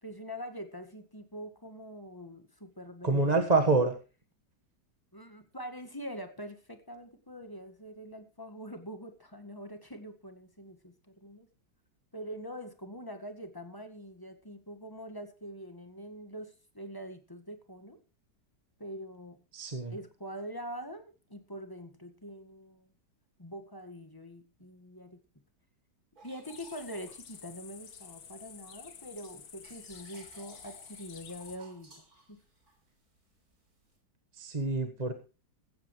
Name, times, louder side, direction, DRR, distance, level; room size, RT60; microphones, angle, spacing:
voice 1, 0.0-3.5 5.1-11.5 12.1-18.0 18.8-19.4 19.9-22.9 23.4-25.2 26.2-32.0 32.3-32.4, equal, 15° left, 7 dB, 1.7 m, -44 dB
voice 2, 3.0-3.9 19.5-19.9 34.3-35.1, right 3 dB, 25° right, 5 dB, 1.5 m, -26 dB
sound 1, 26.2-28.2 28.7-34.0, right 3 dB, 55° right, 4.7 m, -58 dB
sound 2, 26.4-31.6, left 7 dB, 60° left, 1.7 m, -50 dB
16.0 x 15.0 x 3.2 m, 0.33 s
omnidirectional pair, 1.9 m